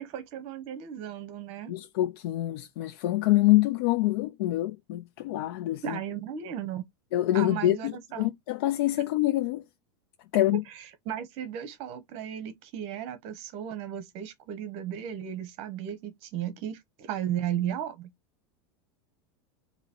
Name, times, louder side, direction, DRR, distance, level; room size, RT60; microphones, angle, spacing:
voice 1, 0.0-1.7 5.8-6.9 7.3-8.3 10.5-18.1, right 10 dB, 50° right, 1.0 m, -35 dB
voice 2, 1.7-6.0 7.1-9.6 10.3-10.6, left 16 dB, 70° left, 0.5 m, -26 dB
4.0 x 2.8 x 4.2 m
supercardioid pair, 140°, 13 cm